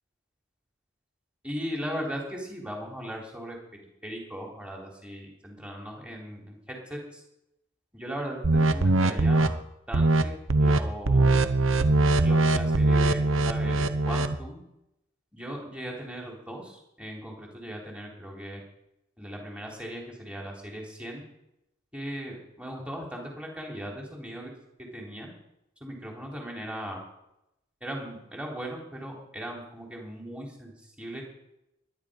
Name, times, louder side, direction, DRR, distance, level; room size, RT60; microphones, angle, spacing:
voice 1, 1.4-3.6 4.0-7.2 7.9-9.6 9.9-11.4 12.2-14.6 15.3-18.6 19.2-21.2 21.9-24.5 24.8-25.3 25.8-27.0 27.8-30.7 31.0-31.2, equal, 5° right, -1 dB, 3.7 m, -38 dB
sound 1, 8.4-9.5 9.9-10.2 10.5-10.8 11.1-14.4, right 2 dB, 70° right, 0.9 m, -22 dB
20.5 x 10.0 x 5.2 m, 0.84 s
head